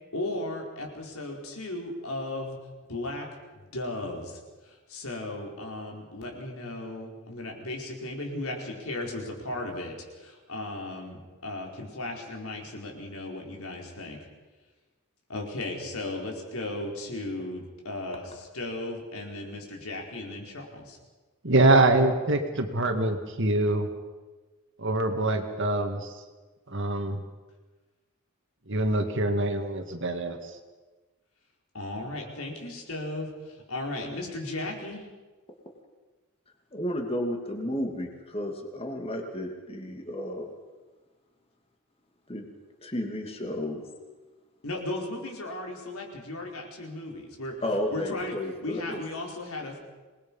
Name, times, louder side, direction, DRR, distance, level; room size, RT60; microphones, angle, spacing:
voice 1, 0.1-2.6 2.9-3.3 3.5-14.3 15.3-21.0 31.7-35.1 44.6-47.5 47.9-49.8, left 2 dB, 75° left, 0 dB, 4.9 m, -36 dB
voice 2, 21.4-23.9 24.8-26.1 26.7-27.2 28.7-30.4, right 2 dB, 55° right, 6 dB, 2.2 m, -24 dB
voice 3, 36.7-40.5 42.3-42.5 42.8-43.8 47.6-49.0, left 1 dB, 25° left, 3 dB, 2.7 m, -32 dB
26.5 x 20.5 x 5.6 m, 1.3 s
head